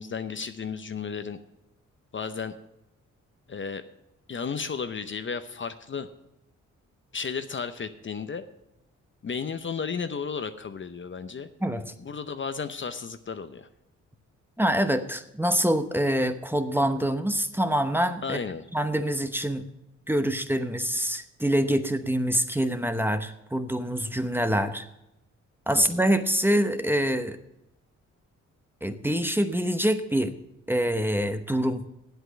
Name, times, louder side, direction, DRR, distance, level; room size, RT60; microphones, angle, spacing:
voice 1, 0.0-1.4 2.1-2.6 3.5-3.8 4.3-6.1 7.1-8.5 9.2-11.5 12.0-13.7 18.2-18.7 25.7-26.0, left 5 dB, 40° left, 10 dB, 0.7 m, -33 dB
voice 2, 11.6-11.9 14.6-18.4 18.7-19.6 20.1-24.8 25.7-27.4 28.8-30.3 30.7-31.8, equal, 5° right, 8 dB, 0.9 m, -25 dB
8.2 x 8.1 x 7.9 m, 0.87 s
cardioid pair, 65°, 31 cm